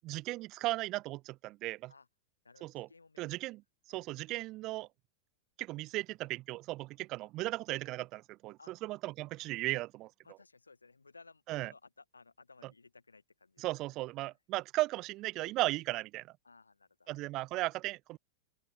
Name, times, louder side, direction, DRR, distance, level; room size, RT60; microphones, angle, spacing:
voice 1, 0.0-1.9 2.6-2.9 3.2-3.6 3.9-4.9 5.6-10.1 11.5-11.7 13.6-16.3 17.1-18.2, right 18 dB, 40° right, 0.4 m, -36 dB
voice 2, 2.4-3.4 3.9-4.0 8.6-8.7 10.2-13.7 16.4-17.2, left 4 dB, 80° left, 6.8 m, -59 dB
open air
figure-of-eight pair, 90°, 0 cm